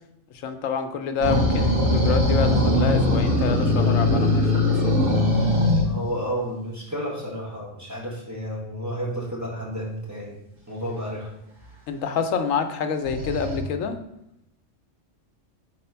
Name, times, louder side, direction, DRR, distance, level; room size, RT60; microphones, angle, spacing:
voice 1, 0.4-5.0 11.9-14.0, left 6 dB, 85° left, 7 dB, 1.1 m, -27 dB
sound 1, 1.2-5.9 13.0-13.6, left 1 dB, 60° right, 2.8 m, -20 dB
voice 2, 5.8-10.4 10.7-11.3, equal, 15° right, -5 dB, 1.5 m, -31 dB
4.6 x 4.2 x 5.6 m, 0.82 s
omnidirectional pair, 1.3 m